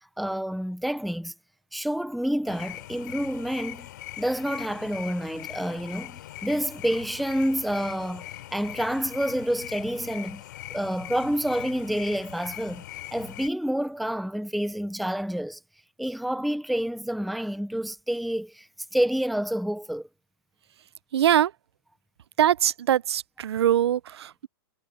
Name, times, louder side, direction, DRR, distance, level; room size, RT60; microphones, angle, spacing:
voice 1, 0.2-1.3 1.7-3.9 4.2-10.4 10.7-12.8 13.1-15.6 16.0-18.7 18.9-20.1, equal, ahead, 0.4 m, -28 dB
sound 1, 2.5-13.5, left 15 dB, 50° left, 3.2 m, -41 dB
voice 2, 21.1-21.5 22.4-24.5, right 11 dB, 85° right, 0.6 m, -22 dB
hypercardioid pair, 175°, 13 cm